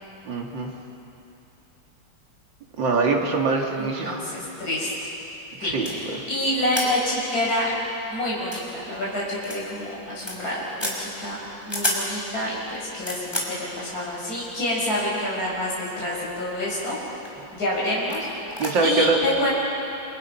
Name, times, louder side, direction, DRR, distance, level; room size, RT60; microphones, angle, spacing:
voice 1, 0.3-0.7 2.8-4.3 5.6-6.2 18.6-19.2, right 4 dB, 75° right, 0 dB, 3.0 m, -24 dB
voice 2, 3.8-5.1 5.6-7.7 8.1-11.4 11.6-17.0 17.5-18.2 18.8-19.5, left 1 dB, 50° left, -5 dB, 6.4 m, -27 dB
sound 1, 5.8-6.0 6.7-6.9 7.3-7.4 7.7-7.8 8.4-8.6 9.4-9.6 9.9-10.4 10.8-11.0 11.6-12.0 12.7-13.5 14.5-14.6 15.5-16.0 16.3-16.8 17.2-17.4 18.1-18.2 18.5-18.7, left 1 dB, 15° left, 4.6 m, -30 dB
27.5 x 26.5 x 5.8 m, 2.9 s
omnidirectional pair, 2.1 m